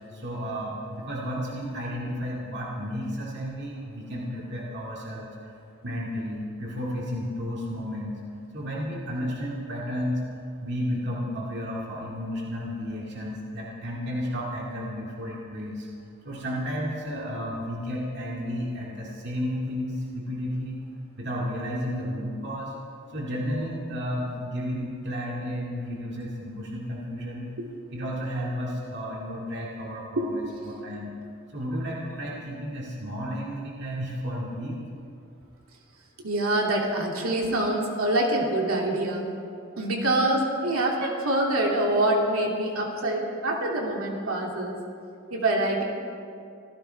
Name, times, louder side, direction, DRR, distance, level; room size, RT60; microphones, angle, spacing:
voice 1, 0.1-5.5 5.8-8.2 8.5-10.2 10.6-15.9 16.2-20.8 21.2-22.8 23.1-27.5 27.9-31.1 31.5-34.8, equal, 55° right, -4 dB, 2.2 m, -32 dB
voice 2, 30.2-30.5 36.2-39.3 39.8-44.8 45.3-45.8, right 1 dB, 85° right, -1 dB, 2.8 m, -25 dB
25.5 x 16.0 x 3.5 m, 2.4 s
head